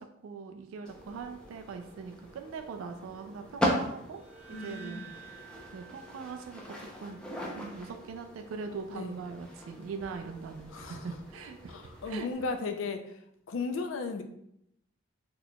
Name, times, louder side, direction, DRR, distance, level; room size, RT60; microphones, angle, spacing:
voice 1, 0.0-4.2 4.5-5.0 5.7-7.2 7.5-12.3, right 5 dB, 85° right, 6 dB, 0.3 m, -41 dB
sound 1, 0.9-12.3, equal, 5° left, 0.5 m, -39 dB
sound 2, 4.1-7.3, right 6 dB, 30° right, 0.8 m, -51 dB
voice 2, 4.5-5.1 8.9-9.2 10.7-11.2 11.7-13.2 13.5-14.2, left 4 dB, 75° left, 6 dB, 0.4 m, -36 dB
4.0 x 2.8 x 2.2 m, 0.76 s
head